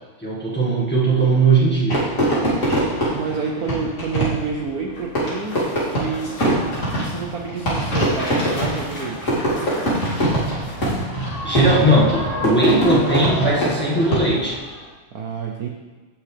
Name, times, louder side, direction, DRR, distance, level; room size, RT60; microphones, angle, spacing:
voice 1, 0.2-2.0 11.4-14.6, right 2 dB, 5° left, -5 dB, 1.3 m, -18 dB
Fireworks, 1.9-14.6, right 1 dB, 35° left, 2.9 m, -23 dB
voice 2, 3.1-5.6 5.9-6.4 6.9-9.4 15.1-15.7, right 5 dB, 65° right, 3 dB, 0.9 m, -28 dB
sound 1, 4.9-11.0 11.4-11.5, left 1 dB, 50° left, 3.2 m, -35 dB
16.5 x 6.2 x 3.3 m, 1.3 s
omnidirectional pair, 2.4 m